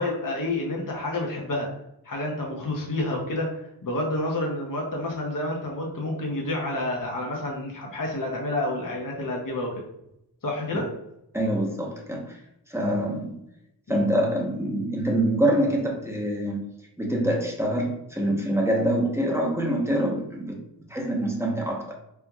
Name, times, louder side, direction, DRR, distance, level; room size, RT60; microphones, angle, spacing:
voice 1, 0.0-1.7 2.0-9.8 10.4-10.9 13.9-14.0, left 1 dB, 50° left, -1 dB, 0.9 m, -29 dB
voice 2, 11.3-12.4 12.7-13.3 13.9-16.6 17.0-20.6 20.9-21.9, right 1 dB, 5° right, -1 dB, 0.9 m, -25 dB
4.4 x 2.4 x 2.3 m, 0.80 s
cardioid pair, 45°, 42 cm